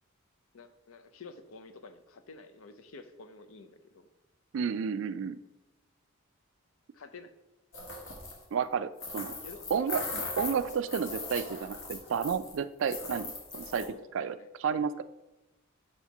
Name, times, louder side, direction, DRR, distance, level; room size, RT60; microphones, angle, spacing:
voice 1, 0.5-4.1 6.9-7.3 9.4-9.7 13.8-14.5, left 4 dB, 75° left, 8 dB, 0.6 m, -50 dB
voice 2, 4.5-5.4 8.5-9.3 9.7-13.8 14.1-15.0, right 6 dB, 60° right, 13 dB, 0.3 m, -31 dB
sound 1, 7.7-8.4 9.0-12.6 12.8-13.8, left 3 dB, 60° left, 1.3 m, -39 dB
4.6 x 4.3 x 5.8 m, 1.0 s
head